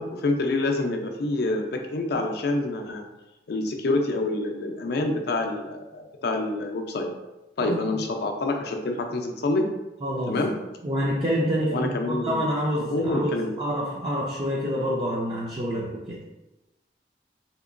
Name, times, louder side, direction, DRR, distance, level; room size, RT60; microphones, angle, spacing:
voice 1, 0.0-3.0 3.5-7.1 7.6-9.7 10.3-10.5 11.7-12.4 12.9-13.5, left 2 dB, 65° left, 3 dB, 0.4 m, -27 dB
voice 2, 7.6-8.0 10.0-10.4 10.8-16.2, equal, 30° right, -5 dB, 0.4 m, -27 dB
3.6 x 2.9 x 2.5 m, 1.0 s
head